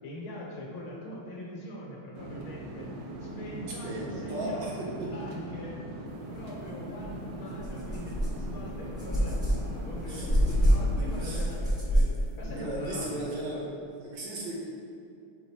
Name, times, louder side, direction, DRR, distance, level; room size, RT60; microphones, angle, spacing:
voice 1, 0.0-2.9 3.2-4.7 5.1-5.8 6.3-13.5, left 1 dB, 70° left, -3 dB, 2.0 m, -42 dB
sound 1, 2.1-11.4, right 1 dB, 85° right, 1.7 m, -40 dB
voice 2, 3.8-5.3 10.1-10.6 10.9-11.5 12.0-13.7 14.0-14.6, right 1 dB, 65° right, -4 dB, 1.5 m, -37 dB
sound 2, 7.0-7.1 7.5-12.6, equal, 5° right, 0.5 m, -27 dB
5.1 x 4.2 x 4.7 m, 2.7 s
omnidirectional pair, 2.4 m